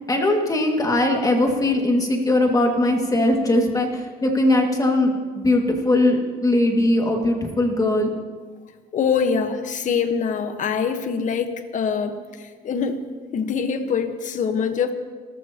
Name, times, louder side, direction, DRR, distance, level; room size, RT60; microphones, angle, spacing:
voice 1, 0.1-8.1, left 1 dB, 20° left, 1 dB, 2.3 m, -20 dB
voice 2, 8.9-13.1 13.3-14.9, left 6 dB, 50° left, 7 dB, 1.4 m, -24 dB
27.0 x 14.0 x 3.0 m, 1.5 s
cardioid pair, 110°, 17 cm